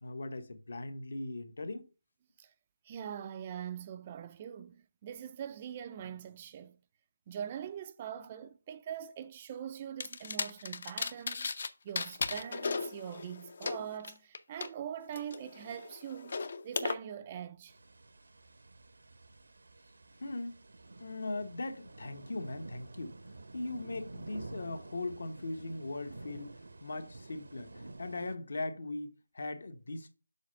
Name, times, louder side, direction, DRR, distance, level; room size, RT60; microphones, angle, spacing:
voice 1, 0.0-1.9 20.2-20.5 21.0-23.2 23.5-26.5 26.8-30.1, left 2 dB, 60° left, 1.1 m, -39 dB
voice 2, 2.8-6.8 7.3-16.4 16.6-17.8, right 9 dB, 20° right, 0.4 m, -43 dB
sound 1, 10.0-11.7 11.9-14.7 15.1-16.9, left 4 dB, 45° left, 0.6 m, -36 dB
sound 2, 17.7-28.4, right 2 dB, 70° right, 0.8 m, -50 dB
7.1 x 4.1 x 5.2 m
figure-of-eight pair, 170°, 0 cm